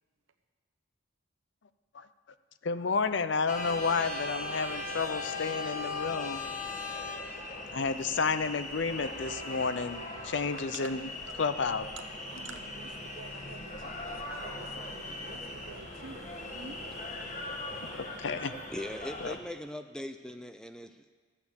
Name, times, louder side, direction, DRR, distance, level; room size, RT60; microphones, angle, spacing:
voice 1, 2.6-6.4 7.7-11.1 11.4-11.9 17.8-18.5 19.2-19.3, left 4 dB, 60° left, 12 dB, 0.5 m, -31 dB
sound 1, 3.5-19.4, left 2 dB, 35° left, 1.4 m, -39 dB
voice 2, 10.5-10.9 11.3-11.4 12.0-14.0 14.3-16.8, right 4 dB, 70° right, 6 dB, 1.0 m, -48 dB
voice 3, 18.7-21.1, left 1 dB, 5° left, 8 dB, 0.4 m, -40 dB
13.5 x 8.4 x 7.1 m, 1.4 s
head